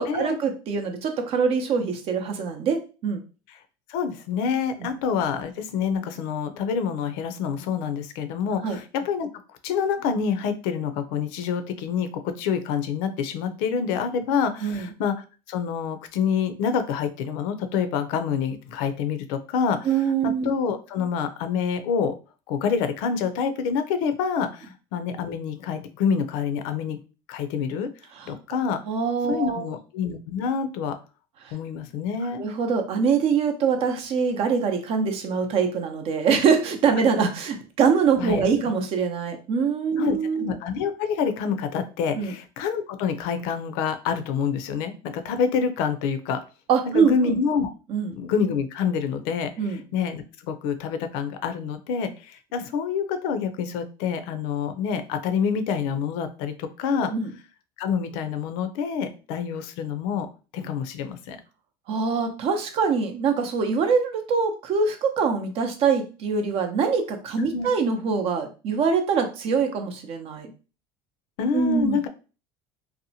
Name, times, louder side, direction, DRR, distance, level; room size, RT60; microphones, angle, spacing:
voice 1, 0.0-3.2 4.8-4.9 8.6-8.8 14.6-14.9 19.8-20.5 28.2-28.3 28.9-29.7 32.4-40.5 42.2-42.3 46.7-47.4 47.9-48.2 49.6-49.8 57.0-57.3 61.9-70.5 71.5-72.0, right 5 dB, 50° right, 6 dB, 0.6 m, -24 dB
voice 2, 3.9-9.3 9.6-15.2 15.5-19.9 20.2-22.1 22.5-27.0 27.3-27.9 28.3-28.8 29.3-31.0 31.5-32.4 38.2-38.5 40.0-46.4 46.9-47.7 48.2-57.1 57.8-60.3 60.5-61.4 67.5-67.7 71.4-72.1, left 6 dB, 75° left, 9 dB, 0.5 m, -27 dB
2.7 x 2.1 x 2.7 m, 0.35 s
supercardioid pair, 95°, 12 cm